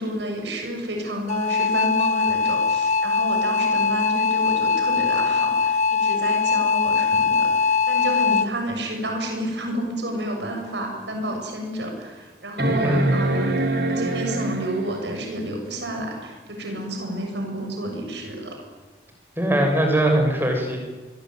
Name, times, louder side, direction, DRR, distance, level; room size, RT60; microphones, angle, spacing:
voice 1, 0.0-13.5 13.9-18.6, right 1 dB, 85° right, 3 dB, 7.3 m, -30 dB
sound 1, 1.3-8.5, left 5 dB, 40° left, 1.0 m, -21 dB
sound 2, 10.4-10.5 11.1-11.2 12.6-15.1 16.8-16.9, right 2 dB, 65° right, 4.0 m, -24 dB
voice 2, 12.6-13.1 19.4-20.8, right 1 dB, 10° right, 2 dB, 7.0 m, -21 dB
27.0 x 22.5 x 9.4 m, 1.2 s
head